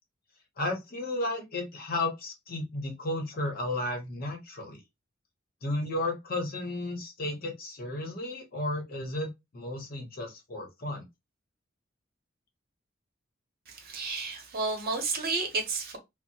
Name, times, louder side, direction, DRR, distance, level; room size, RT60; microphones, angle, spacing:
voice 1, 0.6-4.8 5.6-11.0, left 2 dB, 50° left, 0.8 m, -33 dB
voice 2, 13.7-16.0, right 3 dB, 50° right, 0.8 m, -31 dB
2.8 x 2.0 x 2.7 m
head